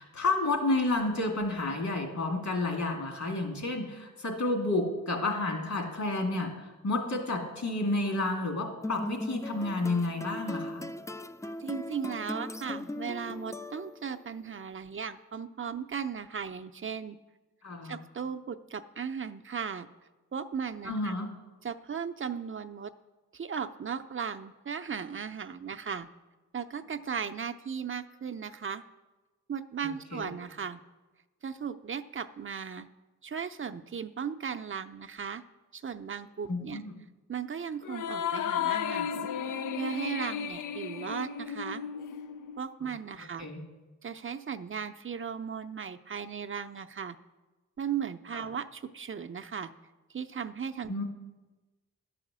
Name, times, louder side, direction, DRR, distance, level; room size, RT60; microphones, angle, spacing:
voice 1, 0.0-10.8 17.6-18.0 20.9-21.3 30.1-30.3 36.5-36.9 42.8-42.9 43.4-43.6 48.3-48.4 50.9-51.0, left 2 dB, 65° left, 2 dB, 2.3 m, -30 dB
sound 1, 8.8-14.2, left 1 dB, 10° left, 0.3 m, -39 dB
voice 2, 11.6-17.2 17.8-19.9 20.3-21.1 21.6-22.9 23.3-26.1 26.5-28.8 29.5-30.8 31.4-32.9 33.2-35.4 35.7-36.8 37.3-41.8 42.6-43.5 44.0-47.2 47.8-49.7 50.1-51.0, right 7 dB, 40° right, 8 dB, 0.6 m, -37 dB
sound 2, 37.8-42.6, left 8 dB, 90° left, 0.5 m, -34 dB
11.0 x 4.9 x 7.4 m, 1.2 s
cardioid pair, 50°, 30 cm